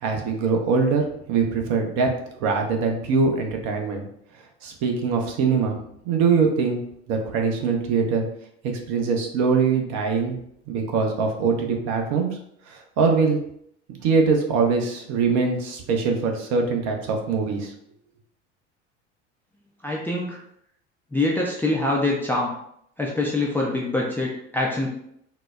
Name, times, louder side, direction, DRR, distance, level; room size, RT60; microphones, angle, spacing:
voice 1, 0.0-2.1 2.4-4.0 4.6-5.8 6.0-6.8 7.1-8.2 8.6-10.4 10.7-12.3 12.7-13.4 14.0-17.7, right 5 dB, 50° right, 3 dB, 0.7 m, -22 dB
voice 2, 19.8-20.4 21.1-22.5 23.0-24.9, left 2 dB, 5° left, -3 dB, 0.4 m, -24 dB
4.0 x 2.0 x 2.3 m, 0.71 s
figure-of-eight pair, 70°, 35 cm